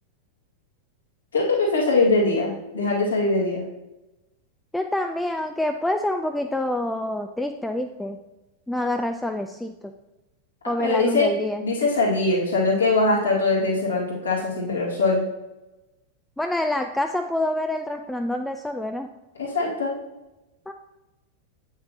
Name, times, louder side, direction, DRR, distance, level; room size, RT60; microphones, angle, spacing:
voice 1, 1.3-3.6 10.8-11.3 11.6-15.2 19.4-20.0, left 3 dB, 75° left, -4 dB, 2.1 m, -22 dB
voice 2, 4.7-8.2 8.7-9.9 10.7-11.6 16.4-19.1 20.7-20.8, left 1 dB, 5° left, 5 dB, 0.4 m, -27 dB
8.1 x 6.3 x 2.8 m, 1.0 s
figure-of-eight pair, 90°, 0 cm